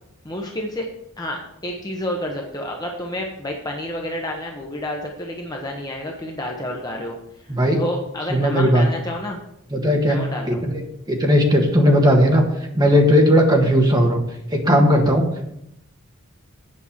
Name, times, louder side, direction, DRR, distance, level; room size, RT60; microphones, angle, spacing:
voice 1, 0.2-0.9 1.2-7.2 7.4-9.4 10.0-10.6, left 1 dB, 15° left, 1 dB, 0.9 m, -29 dB
voice 2, 8.3-8.8 9.7-10.2 10.5-10.8 11.1-12.4 12.7-14.2 14.5-15.5, equal, 20° right, 2 dB, 1.4 m, -16 dB
8.6 x 5.4 x 7.2 m, 0.80 s
head